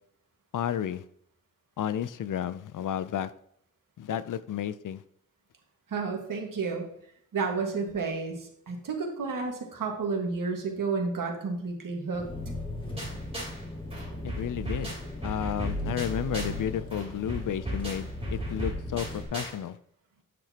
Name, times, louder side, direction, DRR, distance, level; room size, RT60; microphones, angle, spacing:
voice 1, 0.5-1.0 1.8-3.3 4.0-5.0 14.2-15.0 15.2-19.8, left 9 dB, 75° left, 15 dB, 0.5 m, -32 dB
voice 2, 5.9-6.9 7.3-12.3, right 4 dB, 90° right, 2 dB, 1.7 m, -31 dB
Engine, 12.1-19.2, left 1 dB, 15° left, 2.1 m, -38 dB
sound 1, 13.0-13.6 13.9-16.6 16.9-19.5, equal, 20° right, 3.5 m, -36 dB
9.3 x 6.8 x 2.9 m, 0.70 s
wide cardioid pair, 125°, 32 cm